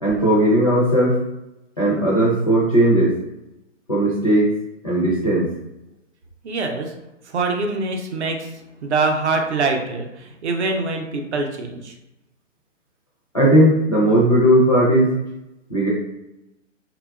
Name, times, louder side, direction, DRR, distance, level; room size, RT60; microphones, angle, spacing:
voice 1, 0.0-1.2 1.8-3.1 3.9-4.5 4.8-5.5 13.3-15.1 15.7-15.9, right 1 dB, 30° left, -6 dB, 0.4 m, -17 dB
voice 2, 6.4-6.9 7.3-8.5 8.8-11.9, right 3 dB, 65° right, 3 dB, 0.6 m, -24 dB
2.8 x 2.2 x 2.3 m, 0.92 s
hypercardioid pair, 165°, 38 cm